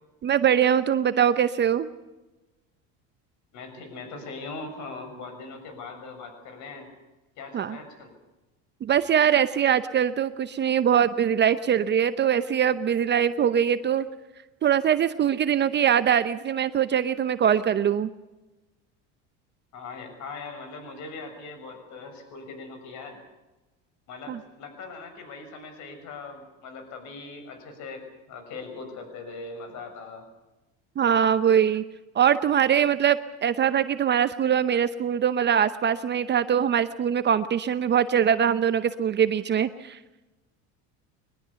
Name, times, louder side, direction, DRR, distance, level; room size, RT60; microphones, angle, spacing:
voice 1, 0.2-1.9 7.5-7.8 8.8-14.0 14.6-18.1 24.3-24.4 31.0-31.8 32.1-40.0, right 9 dB, 30° right, 12 dB, 0.8 m, -22 dB
voice 2, 3.5-6.9 7.4-8.1 19.7-23.2 24.1-30.3, left 3 dB, 55° left, 7 dB, 6.5 m, -40 dB
22.5 x 20.0 x 7.0 m, 1.1 s
supercardioid pair, 120°, 34 cm